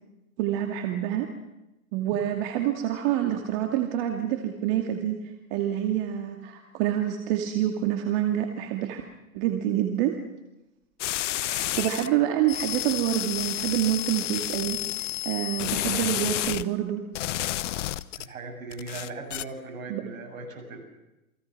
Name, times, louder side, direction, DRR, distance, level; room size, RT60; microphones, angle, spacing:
voice 1, 0.4-1.3 1.9-5.2 5.5-9.0 9.3-10.2 11.4-17.0 19.9-20.0, right 11 dB, 45° right, 4 dB, 2.5 m, -27 dB
sound 1, 11.0-12.1 12.5-16.6 17.1-18.3 18.7-19.4, left 14 dB, 60° left, 0.9 m, -30 dB
voice 2, 18.2-20.8, right 3 dB, 75° right, 4 dB, 7.4 m, -38 dB
29.0 x 21.5 x 6.2 m, 0.97 s
hypercardioid pair, 120°, 42 cm